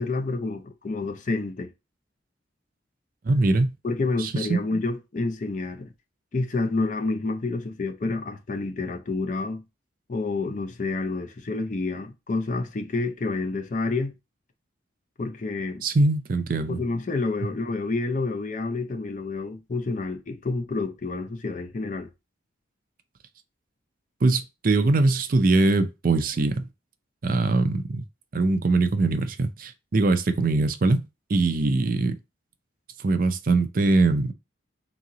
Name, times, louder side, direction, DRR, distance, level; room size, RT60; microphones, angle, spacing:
voice 1, 0.0-1.7 3.8-5.9 6.3-9.6 10.1-14.1 15.2-15.8 16.7-22.1, left 3 dB, 40° left, 0.5 m, -29 dB
voice 2, 3.2-3.7 4.2-4.6 15.8-16.8 24.2-26.7 27.2-28.0 28.3-31.0 31.3-32.1 33.0-34.3, right 3 dB, 45° right, 0.5 m, -22 dB
3.6 x 3.0 x 3.8 m
head